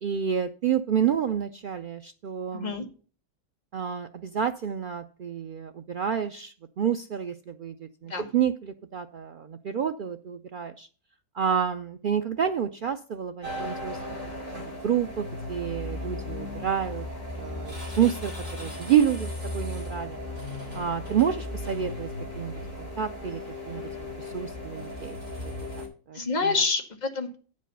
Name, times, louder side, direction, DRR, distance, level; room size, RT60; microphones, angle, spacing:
voice 1, 0.0-2.7 3.7-10.9 11.3-14.0 14.5-17.0 17.4-18.3 18.6-20.2 20.7-22.1 22.4-23.4 23.7-23.8 24.2-25.2 25.8-26.5, right 8 dB, 90° right, 7 dB, 0.4 m, -29 dB
voice 2, 2.5-2.8 8.1-8.3 26.1-27.4, left 4 dB, 30° left, 3 dB, 1.4 m, -27 dB
sound 1, 13.4-25.9, left 1 dB, 25° right, 2.7 m, -36 dB
9.0 x 5.3 x 6.6 m, 0.39 s
omnidirectional pair, 1.5 m